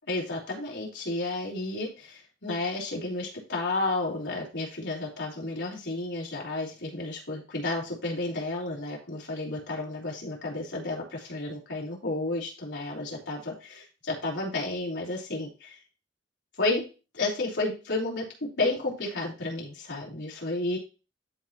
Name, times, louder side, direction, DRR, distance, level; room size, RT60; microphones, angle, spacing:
voice 1, 0.1-15.8 16.6-16.8 17.1-18.2 18.6-20.8, left 2 dB, 70° left, -4 dB, 3.5 m, -32 dB
12.5 x 4.4 x 3.0 m, 0.32 s
head